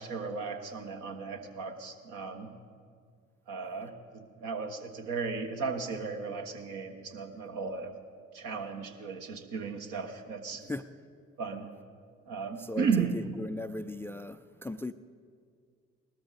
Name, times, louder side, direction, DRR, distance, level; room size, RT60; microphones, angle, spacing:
voice 1, 0.0-2.5 3.5-3.9 4.4-7.9 8.3-10.7 11.4-11.7 12.3-13.2, right 5 dB, 65° right, 1.4 m, -35 dB
voice 2, 12.6-14.9, left 2 dB, 5° left, 0.4 m, -38 dB
19.5 x 13.0 x 4.1 m
hypercardioid pair, 45°, 35 cm